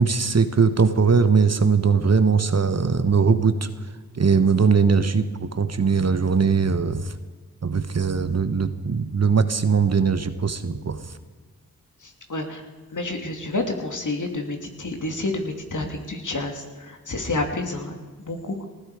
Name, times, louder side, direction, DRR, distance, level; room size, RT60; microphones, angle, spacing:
voice 1, 0.0-3.7 4.1-7.1 7.6-11.0, right 5 dB, 45° right, 11 dB, 1.3 m, -20 dB
voice 2, 12.0-12.6 12.9-18.7, left 2 dB, 55° left, 3 dB, 2.9 m, -29 dB
19.0 x 15.0 x 5.0 m, 1.4 s
cardioid pair, 40°, 37 cm